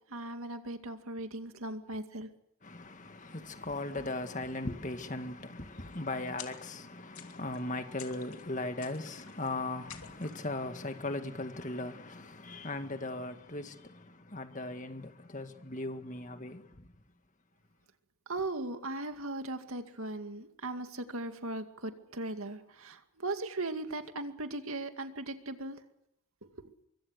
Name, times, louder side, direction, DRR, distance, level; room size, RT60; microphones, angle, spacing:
voice 1, 0.1-2.3 18.3-25.8, right 2 dB, 75° right, 2.3 m, -38 dB
voice 2, 2.7-13.7 14.3-16.6, left 2 dB, 35° left, 1.9 m, -38 dB
sound 1, 6.4-6.9 7.1-7.7 8.0-8.5 8.8-9.5 9.9-10.5, left 9 dB, 80° left, 2.9 m, -50 dB
24.5 x 24.5 x 6.6 m
head